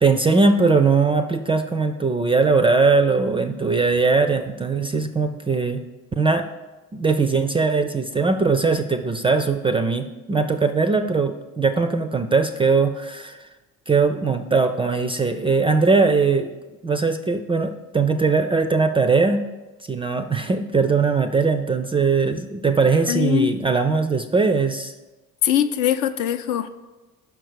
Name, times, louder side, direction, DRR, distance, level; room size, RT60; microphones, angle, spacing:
voice 1, 0.0-5.8 6.2-6.5 6.9-13.5 13.9-16.5 16.8-19.4 19.9-24.9, right 4 dB, 15° right, 8 dB, 0.3 m, -20 dB
voice 2, 23.1-23.5 25.4-26.7, left 10 dB, 65° left, 8 dB, 0.6 m, -21 dB
6.1 x 4.6 x 6.4 m, 1.1 s
figure-of-eight pair, 50°, 41 cm